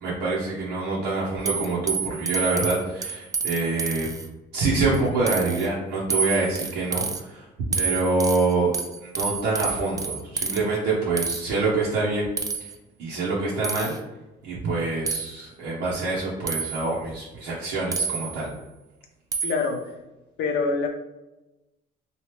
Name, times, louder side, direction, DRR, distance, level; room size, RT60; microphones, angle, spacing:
voice 1, 0.0-4.1 4.5-7.4 7.8-8.8 9.2-12.3 13.0-14.0 14.4-18.5, right 3 dB, 85° right, -6 dB, 0.8 m, -26 dB
sound 1, 1.5-4.3 4.6-5.0 5.3-5.7 6.1-7.2 7.7-10.6 11.2-11.4 12.4-12.7 13.6-14.0 15.1-15.3 16.5-16.9 17.9-18.5 19.3-19.7, right 5 dB, 20° right, 0.3 m, -29 dB
voice 2, 19.4-19.8 20.4-20.9, left 4 dB, 75° left, 4 dB, 0.6 m, -24 dB
2.9 x 2.4 x 3.2 m, 1.0 s
cardioid pair, 110°, 17 cm